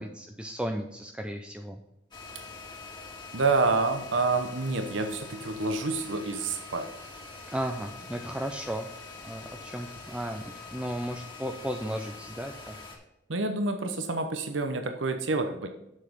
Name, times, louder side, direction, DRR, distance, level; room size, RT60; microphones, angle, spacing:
voice 1, 0.0-1.8 7.5-8.9 9.2-12.7, equal, 5° right, 4 dB, 0.5 m, -35 dB
sound 1, 2.1-13.0, left 3 dB, 25° left, 2.0 m, -44 dB
voice 2, 3.3-6.9 13.3-15.7, right 3 dB, 75° right, 7 dB, 0.9 m, -28 dB
7.4 x 6.4 x 5.2 m, 0.89 s
head